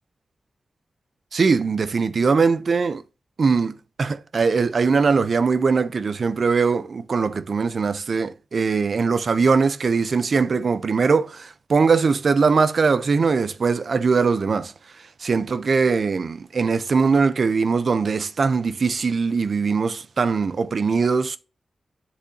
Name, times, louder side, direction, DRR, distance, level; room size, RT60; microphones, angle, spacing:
voice 1, 1.3-3.0 3.4-14.7 15.2-21.4, right 4 dB, 65° right, 0.6 m, -21 dB
7.7 x 6.6 x 2.7 m
cardioid pair, 65°, 0 cm